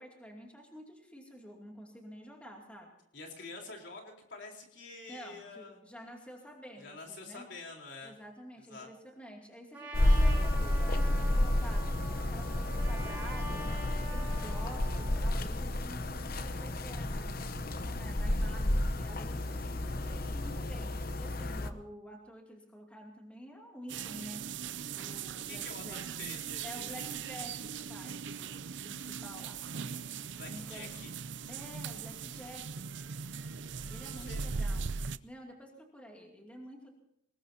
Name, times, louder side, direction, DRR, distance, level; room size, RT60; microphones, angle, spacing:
voice 1, 0.0-2.9 5.1-7.5 8.0-17.4 17.8-24.4 25.0-26.0 26.6-28.6 28.8-29.6 30.5-30.9 31.5-32.9 33.8-34.9 35.2-36.9, equal, 5° left, 0 dB, 2.5 m, -49 dB
voice 2, 3.1-5.8 6.8-8.1 8.7-8.9 25.5-27.2 30.4-31.1 34.0-34.8, left 3 dB, 65° left, 1 dB, 4.0 m, -47 dB
Trumpet, 9.7-15.2, right 1 dB, 10° right, 5.6 m, -44 dB
sound 1, 9.9-21.7, left 1 dB, 50° left, 0.9 m, -31 dB
sound 2, 23.9-35.2, right 6 dB, 70° right, 0.5 m, -39 dB
24.5 x 20.0 x 2.8 m, 0.76 s
head